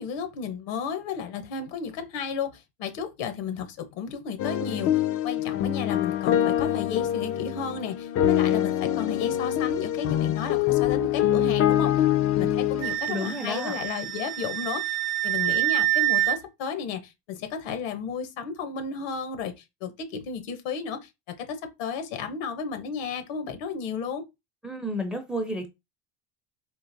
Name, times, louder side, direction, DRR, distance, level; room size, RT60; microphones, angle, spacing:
voice 1, 0.0-11.9 12.4-15.0 15.2-21.1 21.4-24.2, left 6 dB, 75° left, 0.9 m, -33 dB
sound 1, 4.4-13.0, left 11 dB, 45° left, 0.5 m, -24 dB
Wind instrument woodwind instrument, 12.8-16.4, right 17 dB, 55° right, 0.5 m, -26 dB
voice 2, 13.1-13.8 24.6-25.7, left 1 dB, 5° right, 0.6 m, -31 dB
3.8 x 2.5 x 2.6 m
supercardioid pair, 105°, 33 cm